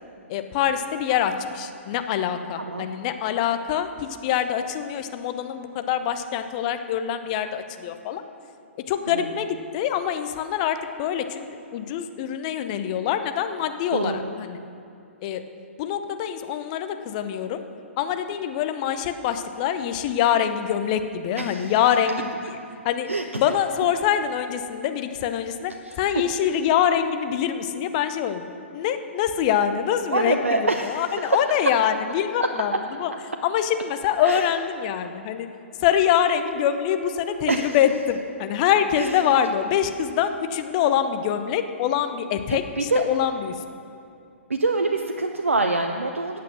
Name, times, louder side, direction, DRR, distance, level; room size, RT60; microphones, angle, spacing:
voice 1, 0.3-8.2 8.9-11.4 11.7-14.6 15.2-15.4 15.8-17.6 18.0-22.6 22.8-23.1 23.4-25.7 26.0-32.7 33.0-33.1 33.4-35.5 35.8-43.5, left 9 dB, 35° left, 9 dB, 0.7 m, -24 dB
voice 2, 13.9-14.3 21.4-21.7 23.1-23.2 25.9-26.0 30.1-31.3 34.2-34.4 37.5-37.8 39.0-39.2 42.5-43.0 44.5-46.4, right 3 dB, 75° right, 5 dB, 0.7 m, -25 dB
13.5 x 8.5 x 6.2 m, 2.6 s
figure-of-eight pair, 120°, 7 cm